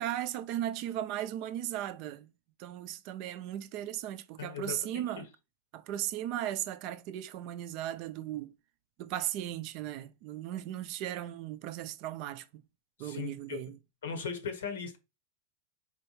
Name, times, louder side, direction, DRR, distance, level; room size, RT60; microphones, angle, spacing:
voice 1, 0.0-2.3 2.6-5.3 5.7-8.5 9.0-12.6 13.0-13.8, right 12 dB, 50° right, 0.4 m, -37 dB
voice 2, 4.4-4.8 5.2-5.3 13.0-13.6 14.0-15.0, left 6 dB, 80° left, 1.0 m, -38 dB
4.3 x 2.3 x 3.0 m
hypercardioid pair, 110°, 0 cm